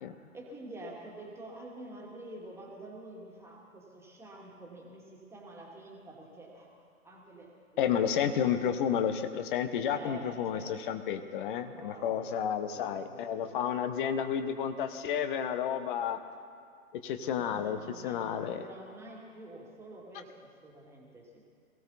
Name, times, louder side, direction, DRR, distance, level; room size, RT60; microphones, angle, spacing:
voice 1, 0.3-8.9 9.8-11.0 11.6-12.4 12.7-13.5 17.3-21.4, right 2 dB, 5° right, -3 dB, 2.3 m, -48 dB
voice 2, 7.8-16.2 17.0-18.6, left 8 dB, 35° left, 9 dB, 1.1 m, -31 dB
22.0 x 16.0 x 4.1 m, 2.2 s
figure-of-eight pair, 120°, 44 cm